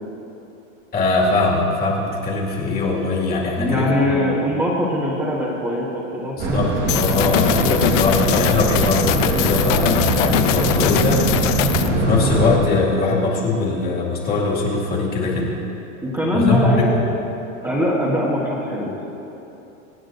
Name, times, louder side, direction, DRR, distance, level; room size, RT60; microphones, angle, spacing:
voice 1, 0.9-4.2 6.4-11.2 11.9-15.5 16.3-16.9, left 3 dB, 25° left, -4 dB, 2.1 m, -21 dB
voice 2, 3.6-6.6 16.0-16.9 17.6-19.0, left 1 dB, 5° right, -7 dB, 1.3 m, -21 dB
sound 1, 6.4-12.6, right 2 dB, 25° right, 1.1 m, -22 dB
Roland In, 6.9-11.9, left 11 dB, 70° left, 0.7 m, -22 dB
25.5 x 8.6 x 2.6 m, 3.0 s
supercardioid pair, 155°, 40 cm